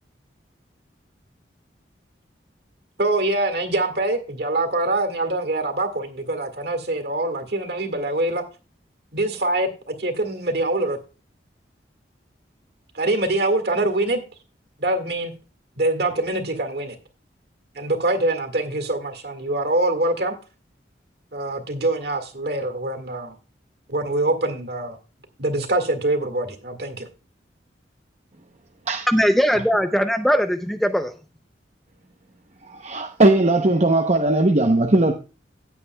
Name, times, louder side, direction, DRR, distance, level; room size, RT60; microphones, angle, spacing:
voice 1, 3.0-8.4 9.1-11.0 12.9-14.2 14.8-15.3 15.8-17.0 17.8-20.3 21.3-23.3 23.9-25.0 25.4-27.1, right 2 dB, 60° right, 1.9 m, -24 dB
voice 2, 29.1-31.1, equal, ahead, 0.5 m, -20 dB
voice 3, 32.7-35.1, right 2 dB, 35° right, 0.7 m, -18 dB
16.5 x 8.3 x 2.3 m
head